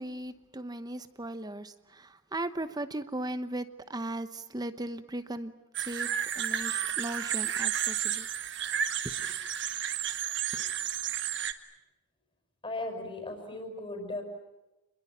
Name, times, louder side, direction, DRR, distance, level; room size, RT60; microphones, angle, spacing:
voice 1, 0.0-5.5 5.8-8.3 9.2-9.3 10.5-10.7, right 1 dB, 20° right, 11 dB, 0.9 m, -37 dB
sound 1, 5.7-11.5, right 9 dB, 60° right, 1.6 m, -32 dB
voice 2, 12.6-14.2, left 2 dB, 25° left, 5 dB, 5.7 m, -37 dB
29.0 x 22.0 x 8.9 m, 1.0 s
head